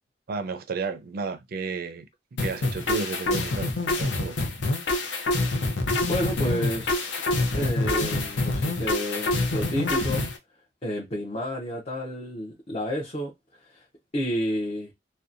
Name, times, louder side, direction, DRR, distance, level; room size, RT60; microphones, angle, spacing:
voice 1, 0.3-2.1 2.4-4.4, right 4 dB, 55° right, 0.4 m, -32 dB
sound 1, 2.4-10.4, left 2 dB, 75° left, 0.6 m, -26 dB
voice 2, 6.1-7.2 7.5-10.3 10.8-13.9 14.1-14.9, equal, 35° left, 0.6 m, -31 dB
2.7 x 2.1 x 2.4 m
head